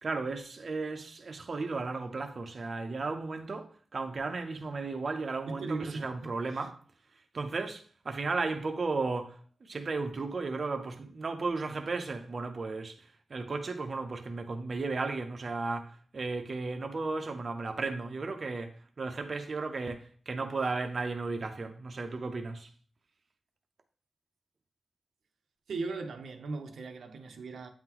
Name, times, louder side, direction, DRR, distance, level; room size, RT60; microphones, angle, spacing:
voice 1, 0.0-6.8 7.3-22.7, right 3 dB, 40° right, 0.5 m, -35 dB
voice 2, 5.5-6.7 25.7-27.7, right 3 dB, 85° right, 0.6 m, -38 dB
8.5 x 3.8 x 2.9 m
wide cardioid pair, 150°, 0 cm